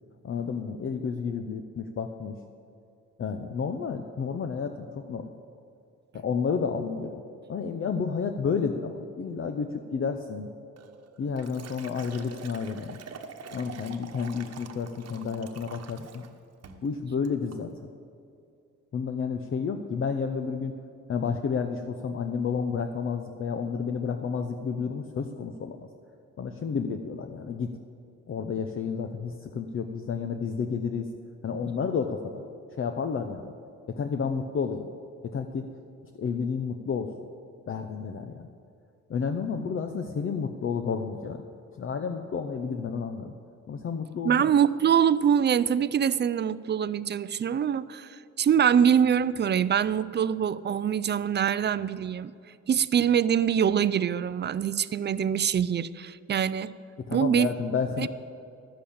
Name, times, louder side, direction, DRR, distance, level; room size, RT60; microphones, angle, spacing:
voice 1, 0.2-2.3 3.2-5.3 6.1-7.2 7.5-10.5 11.2-13.0 13.5-16.2 16.8-17.7 18.9-20.8 21.1-25.8 26.4-27.8 28.3-31.1 31.4-32.4 32.8-33.5 34.0-34.9 35.3-35.7 36.2-37.1 37.7-38.5 39.1-41.4 41.8-43.3 43.7-44.5 57.1-58.1, left 5 dB, 45° left, 7 dB, 0.7 m, -31 dB
Liquid, 10.8-16.3 16.6-16.9 17.2-17.6, right 6 dB, 55° right, 1.2 m, -45 dB
voice 2, 44.2-52.3 52.7-56.7 57.1-57.5 58.0-58.1, right 8 dB, 35° right, 16 dB, 0.4 m, -24 dB
12.0 x 7.7 x 8.5 m, 2.4 s
cardioid pair, 90°, 30 cm